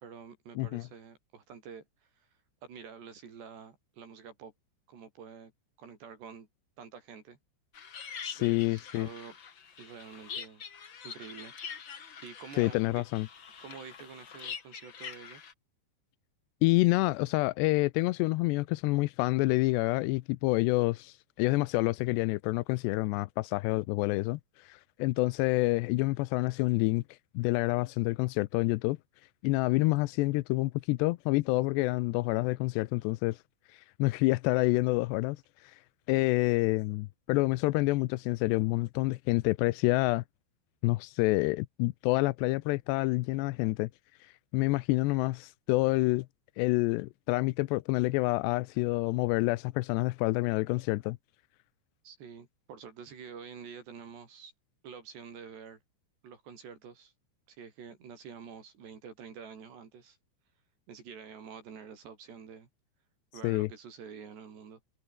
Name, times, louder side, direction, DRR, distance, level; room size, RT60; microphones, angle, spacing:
voice 1, 0.0-2.3 2.6-4.5 4.9-5.5 5.8-6.5 6.8-7.4 8.4-9.4 9.8-10.6 11.0-11.5 12.2-13.0 13.6-15.4 52.0-54.5 54.8-55.8 56.2-57.1 57.5-60.2 60.9-62.7 63.3-64.8, right 6 dB, 70° right, 6.2 m, -48 dB
sound 1, 7.7-15.5, left 7 dB, 45° left, 1.5 m, -44 dB
voice 2, 8.2-9.1 12.6-13.3 16.6-29.0 29.4-33.4 33.7-35.8 36.1-40.2 40.8-43.9 44.2-46.3 46.6-51.2 63.4-63.7, left 21 dB, 85° left, 2.7 m, -28 dB
omnidirectional pair, 5.1 m